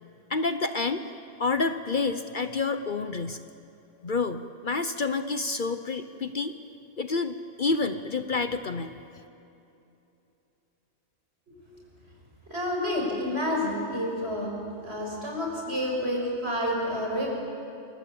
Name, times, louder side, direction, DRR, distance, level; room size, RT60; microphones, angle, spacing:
voice 1, 0.3-1.0 1.4-3.4 4.0-6.6 7.0-8.9, left 4 dB, 45° left, 9 dB, 1.0 m, -28 dB
voice 2, 12.5-14.5 14.8-17.3, left 1 dB, 60° right, -1 dB, 6.8 m, -29 dB
29.0 x 22.5 x 8.7 m, 2.9 s
omnidirectional pair, 1.2 m